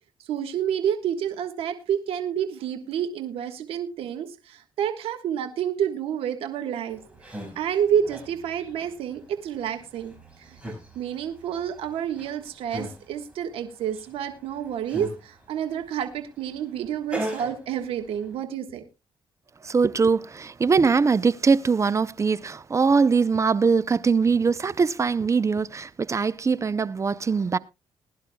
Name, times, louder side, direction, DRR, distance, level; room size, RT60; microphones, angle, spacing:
voice 1, 0.3-7.0 7.3-10.1 10.4-10.6 10.9-18.8, right 9 dB, 85° right, 1.4 m, -29 dB
sound 1, 6.9-18.3, right 1 dB, 10° right, 6.0 m, -40 dB
voice 2, 19.6-27.6, right 5 dB, 30° right, 0.6 m, -22 dB
21.0 x 11.0 x 2.3 m
cardioid pair, 85°, 9 cm